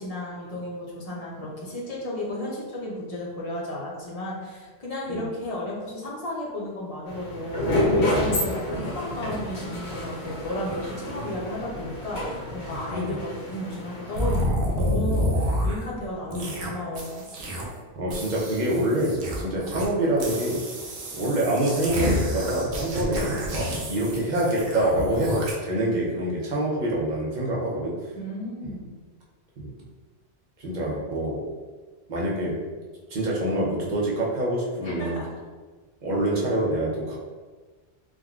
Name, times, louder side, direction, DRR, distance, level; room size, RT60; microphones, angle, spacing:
voice 1, 0.0-17.3 28.2-28.9 34.8-35.3, left 1 dB, 40° left, -4 dB, 0.7 m, -33 dB
sound 1, 7.1-14.4, left 1 dB, 90° left, 1.2 m, -29 dB
sound 2, 14.2-15.9 16.3-16.7 17.0-17.8 18.1-19.9 20.2-25.5, equal, 85° right, 0.9 m, -29 dB
voice 2, 17.9-20.6 21.1-27.9 28.6-28.7 29.6-29.7 30.6-31.4 32.1-32.6 33.1-35.2 36.0-37.2, right 1 dB, 50° right, -4 dB, 0.7 m, -26 dB
3.6 x 2.2 x 2.3 m, 1.4 s
omnidirectional pair, 1.1 m